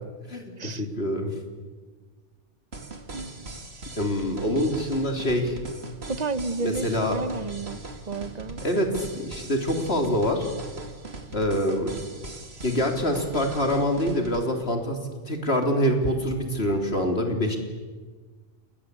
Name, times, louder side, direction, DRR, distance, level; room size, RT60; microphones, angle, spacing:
voice 1, 0.3-1.3 4.0-5.6 6.6-7.2 8.6-10.5 11.3-11.9 12.6-15.0 15.3-17.6, equal, 55° left, 3 dB, 3.8 m, -25 dB
sound 1, 2.7-14.4, right 2 dB, 60° right, 2.8 m, -40 dB
voice 2, 3.1-3.6 6.1-7.8 8.1-8.6, right 3 dB, 35° right, 14 dB, 1.0 m, -32 dB
29.5 x 22.0 x 8.4 m, 1.4 s
omnidirectional pair, 1.2 m